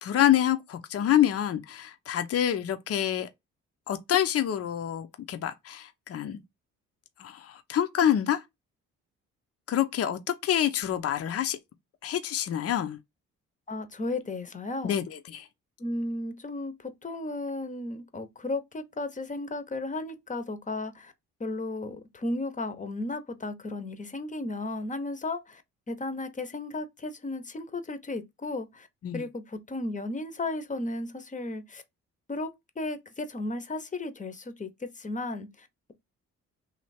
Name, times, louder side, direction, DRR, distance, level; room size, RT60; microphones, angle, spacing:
voice 1, 0.0-3.3 3.9-6.4 7.2-8.4 9.7-11.6 12.0-13.0 14.8-15.5 29.0-29.2, left 11 dB, 50° left, 0.7 m, -27 dB
voice 2, 13.7-15.0 15.8-21.1 21.4-25.6 25.9-28.9 29.1-31.8 32.3-35.9, left 2 dB, 25° left, 0.8 m, -34 dB
3.2 x 2.8 x 4.2 m
cardioid pair, 90°, 30 cm